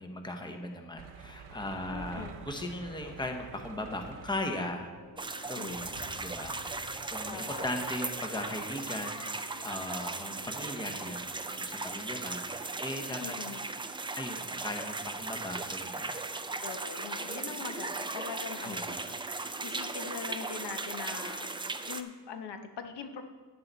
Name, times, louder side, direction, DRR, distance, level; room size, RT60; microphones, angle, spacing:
voice 1, 0.0-4.9 5.4-13.3 14.2-16.2 18.6-19.0, left 1 dB, 10° left, 4 dB, 1.0 m, -38 dB
sound 1, 1.0-4.9 5.6-5.8 6.2-6.3, right 6 dB, 80° right, 0.9 m, -49 dB
sound 2, 1.5-20.0, left 1 dB, 65° left, 3.9 m, -55 dB
voice 2, 1.9-2.3 5.5-5.9 7.2-7.9 13.2-13.7 16.6-19.2 19.6-21.5 21.8-23.2, left 6 dB, 85° left, 6 dB, 1.1 m, -42 dB
sound 3, 5.2-22.0, right 3 dB, 10° right, 0.4 m, -37 dB
10.5 x 10.0 x 4.0 m, 1.4 s
wide cardioid pair, 130°, 40 cm